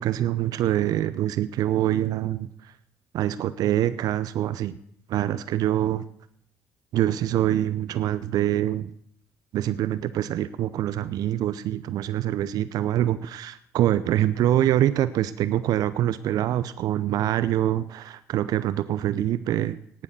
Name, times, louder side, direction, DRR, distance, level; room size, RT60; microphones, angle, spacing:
voice 1, 0.0-2.5 3.1-4.8 5.1-6.1 6.9-8.9 9.5-19.8, right 12 dB, 60° right, 14 dB, 0.7 m, -25 dB
18.5 x 7.3 x 6.8 m, 0.66 s
figure-of-eight pair, 45°, 7 cm